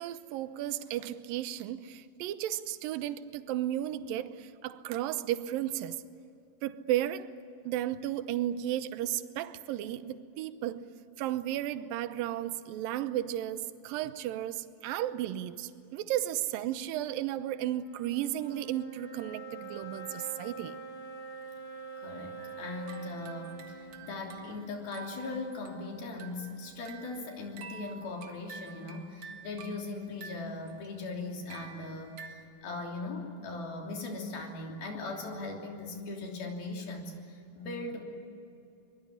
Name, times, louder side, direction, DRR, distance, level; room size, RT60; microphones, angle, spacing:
voice 1, 0.0-6.0 6.6-7.3 7.6-10.9 11.2-20.8, right 12 dB, 80° right, 2.5 m, -34 dB
sound 1, 16.5-25.9, right 4 dB, 50° left, 5.8 m, -46 dB
voice 2, 22.0-38.0, left 3 dB, 85° left, 5.1 m, -39 dB
sound 2, 22.4-32.5, right 6 dB, 50° right, 2.5 m, -50 dB
25.0 x 22.0 x 9.9 m
omnidirectional pair, 4.2 m